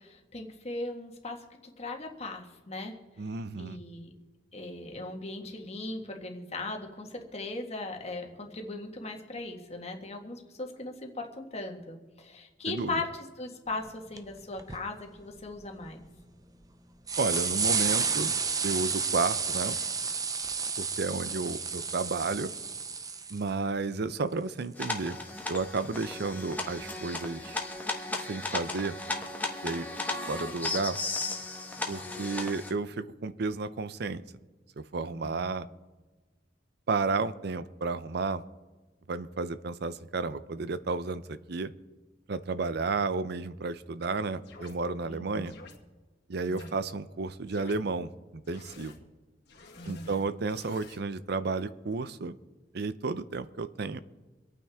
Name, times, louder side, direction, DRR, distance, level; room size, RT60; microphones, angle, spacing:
voice 1, 0.0-3.0 3.6-4.1 4.5-16.0 35.1-35.5 45.1-45.5 46.4-46.7 49.8-50.1, left 2 dB, 35° left, 2 dB, 1.7 m, -38 dB
voice 2, 3.2-3.8 12.7-13.0 17.2-18.3 18.6-19.8 20.8-22.5 23.3-25.2 25.5-27.6 28.3-29.0 29.6-29.9 30.3-31.0 31.9-34.2 34.8-35.7 36.9-38.4 39.1-41.7 42.3-45.5 46.3-48.9 49.8-52.4 52.7-54.0, right 4 dB, 60° right, 14 dB, 0.6 m, -32 dB
sound 1, 13.9-14.0 14.2-14.3 14.6-14.8 15.4-16.1 16.6-16.7 17.1-23.5 25.6-25.7 27.0-27.1, right 5 dB, 20° right, 0.6 m, -31 dB
sound 2, 24.8-32.7, left 2 dB, 10° left, 1.3 m, -35 dB
sound 3, 44.4-44.8 45.4-45.8 46.5-46.7 47.4-47.8 48.4-49.0 49.4-51.0, left 4 dB, 65° left, 2.2 m, -51 dB
25.5 x 9.1 x 3.6 m, 1.2 s
head